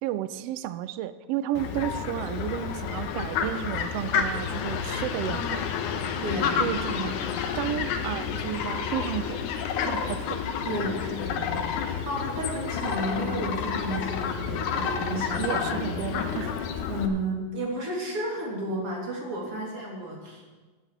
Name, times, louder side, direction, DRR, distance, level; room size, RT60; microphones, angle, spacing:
voice 1, 0.0-5.6 6.6-7.2 7.5-9.4 9.8-10.4 15.4-16.7, right 12 dB, 90° right, 13 dB, 1.4 m, -32 dB
Fowl, 1.6-17.1, left 7 dB, 90° left, 2.4 m, -30 dB
voice 2, 6.2-6.6 6.9-7.1 10.6-15.9 16.9-20.5, right 1 dB, 50° right, -2 dB, 3.8 m, -32 dB
11.5 x 8.3 x 7.8 m, 1.3 s
omnidirectional pair, 3.3 m